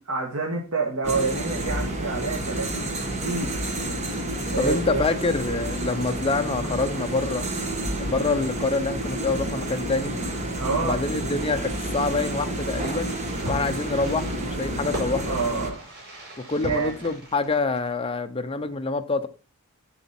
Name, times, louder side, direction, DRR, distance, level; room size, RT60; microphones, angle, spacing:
voice 1, 0.0-3.6 4.5-5.0 10.6-10.9 15.2-15.8 16.6-16.9, right 4 dB, 70° right, 1.7 m, -28 dB
sound 1, 1.0-15.7, right 1 dB, 30° right, 1.5 m, -30 dB
voice 2, 4.6-7.5 8.0-10.1 10.8-13.1 13.5-15.4 16.4-19.3, left 3 dB, 25° left, 0.7 m, -26 dB
Fireworks, 12.6-18.1, equal, 50° right, 4.8 m, -39 dB
8.3 x 7.2 x 4.4 m
head